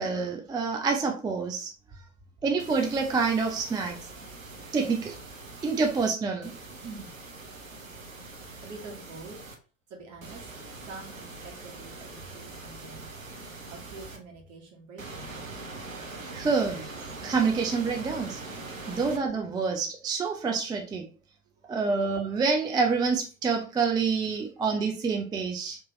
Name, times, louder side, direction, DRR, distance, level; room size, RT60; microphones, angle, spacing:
voice 1, 0.0-1.7 2.4-4.1 4.7-5.2 5.6-6.5 16.3-17.0 17.2-18.4 18.9-21.1 21.7-25.8, right 4 dB, 10° right, 0.4 m, -27 dB
sound 1, 2.6-6.1 6.4-9.6 10.2-14.2 15.0-19.2, right 3 dB, 90° right, 0.6 m, -43 dB
voice 2, 8.6-9.4 9.9-10.4 10.9-13.1 13.7-15.5 18.8-19.0 21.6-21.7, right 3 dB, 45° right, 1.3 m, -45 dB
3.5 x 2.9 x 2.9 m
figure-of-eight pair, 60°, 39 cm